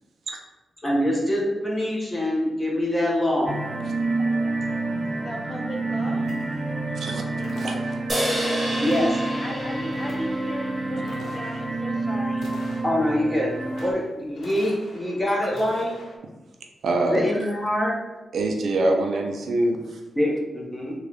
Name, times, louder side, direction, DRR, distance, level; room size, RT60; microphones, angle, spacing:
voice 1, 0.8-3.5 7.6-7.7 8.2-8.3 8.8-9.2 12.8-13.5 13.8-15.9 17.1-17.9 20.2-20.9, left 1 dB, 15° left, -3 dB, 1.0 m, -24 dB
sound 1, 3.5-13.9, right 2 dB, 30° right, 0.6 m, -28 dB
voice 2, 5.2-6.4 9.4-12.5, equal, 35° left, 1 dB, 0.5 m, -36 dB
sound 2, 6.2-6.9 7.4-8.3 8.8-9.4 9.7-10.5 11.0-11.7 12.3-13.2 13.5-14.1 14.4-15.2 15.4-16.2, left 1 dB, 90° left, 0.8 m, -44 dB
sound 3, 8.1-11.6, equal, 15° right, 1.2 m, -30 dB
voice 3, 16.8-17.3 18.3-20.0, right 2 dB, 75° right, 2 dB, 0.5 m, -24 dB
3.6 x 2.4 x 3.4 m, 1.1 s
cardioid pair, 85°, 0 cm